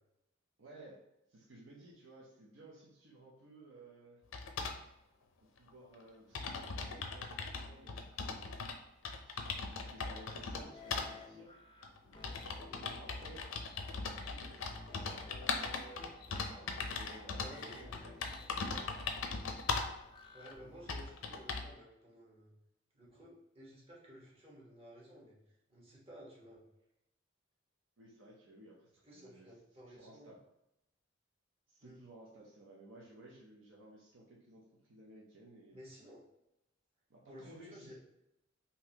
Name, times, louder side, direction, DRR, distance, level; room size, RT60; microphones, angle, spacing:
voice 1, 0.6-1.0 1.3-4.2 5.6-8.5 9.2-9.5 9.9-11.6 12.2-13.4 13.9-15.3 16.3-19.1 28.0-29.5 29.9-30.4 31.7-35.8 37.1-38.0, right 1 dB, 70° right, -3 dB, 0.7 m, -57 dB
sound 1, 4.3-4.8 5.7-5.8 6.0-6.1 6.3-8.8 9.0-10.6 10.9-11.1 11.8-20.0 20.5-20.6 20.9-21.7, left 4 dB, 90° left, 0.5 m, -39 dB
sound 2, 10.3-21.1, left 2 dB, 25° left, 0.5 m, -54 dB
voice 2, 17.3-17.8 20.3-22.5 22.9-25.4 25.7-26.6 29.0-30.3 31.8-32.0 35.7-36.3 37.3-38.0, equal, 30° right, -6 dB, 1.2 m, -55 dB
3.8 x 2.7 x 2.8 m, 0.86 s
head